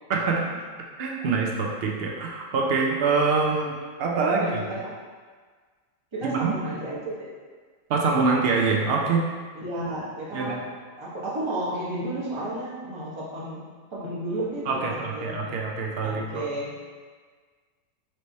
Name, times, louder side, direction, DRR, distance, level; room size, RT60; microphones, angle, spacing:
voice 1, 0.1-0.4 1.0-4.6 6.3-6.5 7.9-9.3 10.3-10.6 14.7-16.4, right 4 dB, 75° right, -1 dB, 0.5 m, -25 dB
voice 2, 4.2-4.9 6.1-7.3 9.5-10.6 11.0-13.6 13.9-15.6 16.0-16.8, right 1 dB, 25° right, -7 dB, 0.8 m, -32 dB
3.3 x 3.2 x 4.0 m, 1.5 s
omnidirectional pair, 1.6 m